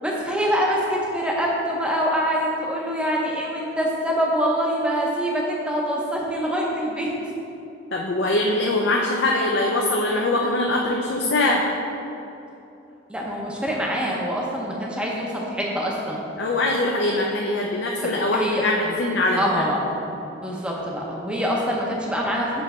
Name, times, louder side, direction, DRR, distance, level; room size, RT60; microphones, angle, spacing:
voice 1, 0.0-7.1 13.1-16.2 18.3-18.9 19.4-20.1 20.3-22.6, equal, 5° right, -3 dB, 0.7 m, -25 dB
voice 2, 7.9-11.6 16.4-19.7, left 2 dB, 60° left, -1 dB, 0.5 m, -22 dB
7.0 x 3.2 x 5.4 m, 2.9 s
head